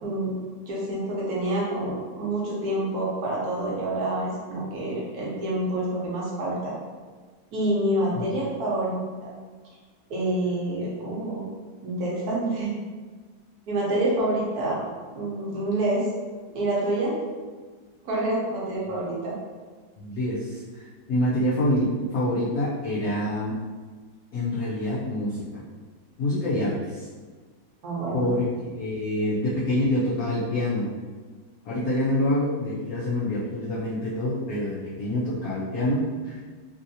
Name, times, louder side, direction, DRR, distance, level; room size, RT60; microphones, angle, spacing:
voice 1, 0.0-0.3 0.7-6.7 7.5-9.3 10.1-11.5 11.8-12.8 13.7-14.8 15.1-16.1 16.5-17.2 18.0-19.4 27.8-28.3, right 1 dB, 60° right, -5 dB, 1.1 m, -27 dB
voice 2, 20.0-23.6 24.3-25.6 26.2-27.1 28.1-30.9 31.6-36.4, left 1 dB, 70° left, -8 dB, 0.8 m, -26 dB
3.3 x 2.7 x 2.6 m, 1.4 s
omnidirectional pair, 2.2 m